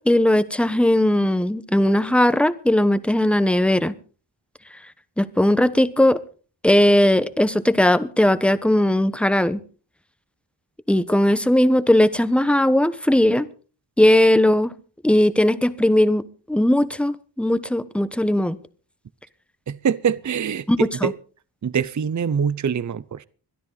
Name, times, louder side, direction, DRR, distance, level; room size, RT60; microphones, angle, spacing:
voice 1, 0.1-3.9 5.2-6.2 6.6-9.6 10.9-13.5 14.0-14.7 15.0-18.6 20.7-21.1, left 1 dB, 5° left, 1.0 m, -18 dB
voice 2, 19.7-21.1 21.6-23.3, right 7 dB, 40° right, 0.6 m, -24 dB
22.0 x 12.5 x 4.0 m
wide cardioid pair, 70°, 45 cm